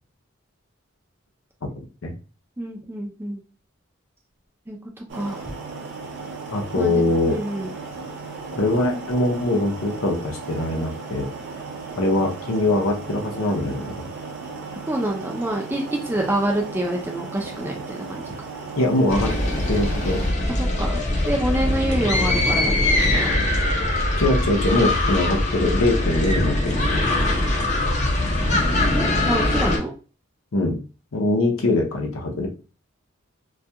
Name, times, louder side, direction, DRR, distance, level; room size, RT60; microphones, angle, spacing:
voice 1, 1.8-2.1 6.5-7.4 8.5-11.3 12.0-14.1 18.8-19.3 19.7-20.2 24.2-27.1 30.5-30.8 31.1-32.5, left 2 dB, 90° left, 2 dB, 0.6 m, -22 dB
voice 2, 2.6-3.4 4.7-4.8 5.1-5.4 6.7-7.7 14.9-18.3 20.6-22.7 23.0-23.3 28.9-29.9, right 1 dB, 10° right, 0 dB, 0.4 m, -27 dB
sound 1, 5.1-20.3, right 4 dB, 60° right, 0.6 m, -36 dB
sound 2, 19.1-29.8, left 1 dB, 35° left, 0.6 m, -22 dB
2.3 x 2.2 x 2.7 m, 0.35 s
head